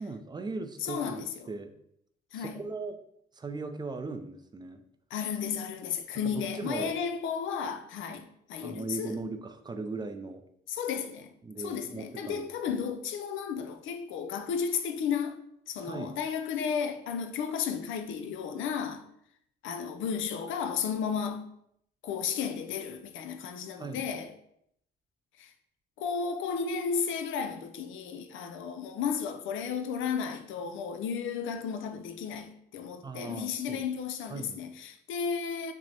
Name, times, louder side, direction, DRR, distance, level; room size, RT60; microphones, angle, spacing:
voice 1, 0.0-1.7 2.3-3.0 3.3-4.8 6.2-7.0 8.6-10.4 11.4-13.0 15.8-16.2 23.8-24.1 33.0-33.9 34.3-34.6, right 3 dB, 20° right, 0.3 m, -38 dB
voice 2, 0.8-1.3 2.3-2.6 5.1-8.2 8.5-9.2 10.7-15.4 15.7-19.0 19.6-21.4 22.0-24.3 25.4-25.5 26.0-35.7, left 6 dB, 80° left, 0.5 m, -33 dB
5.9 x 2.0 x 2.8 m
cardioid pair, 90°, 20 cm